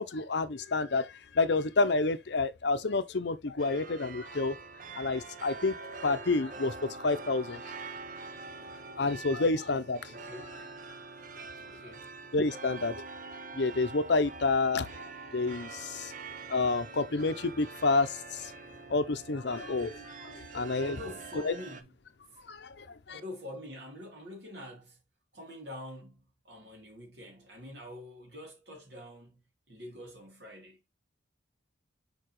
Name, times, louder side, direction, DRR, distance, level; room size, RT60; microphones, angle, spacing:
voice 1, 0.0-4.6 4.9-7.6 9.0-10.0 12.3-13.0 13.5-14.9 15.3-16.1 16.5-18.5 18.9-20.9 21.5-21.6 22.5-22.9, left 3 dB, 60° left, 0.7 m, -29 dB
sound 1, 3.6-21.8, right 4 dB, 40° right, 0.7 m, -45 dB
voice 2, 10.1-10.6 11.5-12.1 20.6-22.0 22.3-22.4 23.1-25.0 25.3-30.8, left 1 dB, 60° right, 3.2 m, -46 dB
6.8 x 4.7 x 3.1 m
head